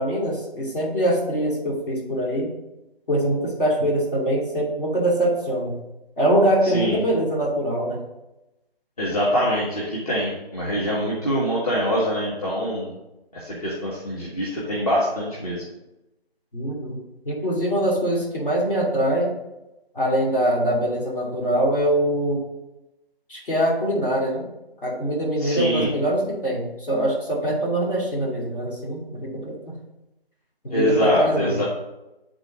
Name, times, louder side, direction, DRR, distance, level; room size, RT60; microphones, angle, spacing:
voice 1, 0.0-2.5 3.1-5.8 6.2-8.0 16.5-17.0 17.3-19.4 19.9-22.4 23.3-24.5 24.8-29.7 30.6-31.6, right 1 dB, 55° left, -4 dB, 2.6 m, -23 dB
voice 2, 9.0-12.9 13.3-15.6 25.4-25.9 30.7-31.6, equal, 35° left, -6 dB, 1.3 m, -24 dB
9.1 x 3.9 x 3.7 m, 0.97 s
figure-of-eight pair, 160°, 31 cm